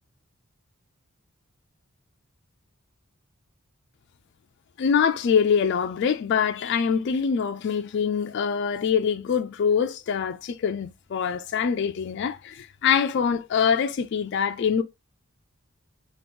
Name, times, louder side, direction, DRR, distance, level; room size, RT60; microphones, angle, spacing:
voice 1, 4.8-14.8, left 7 dB, 55° left, 0.3 m, -24 dB
2.9 x 2.3 x 3.5 m
head